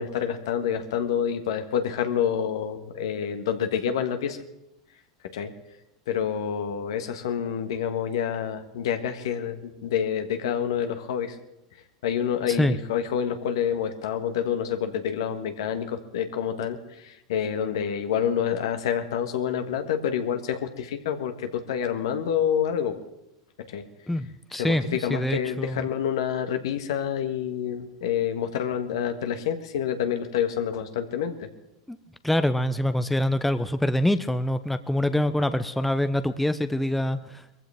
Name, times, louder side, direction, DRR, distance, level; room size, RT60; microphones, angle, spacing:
voice 1, 0.0-4.4 5.3-5.5 6.1-11.4 12.0-23.0 23.7-23.8 24.5-31.5, left 8 dB, 70° left, 7 dB, 1.7 m, -28 dB
voice 2, 24.1-25.9 31.9-32.0 32.2-37.6, left 1 dB, 5° left, 11 dB, 0.8 m, -25 dB
22.0 x 15.0 x 3.6 m, 0.90 s
hypercardioid pair, 95°, 3 cm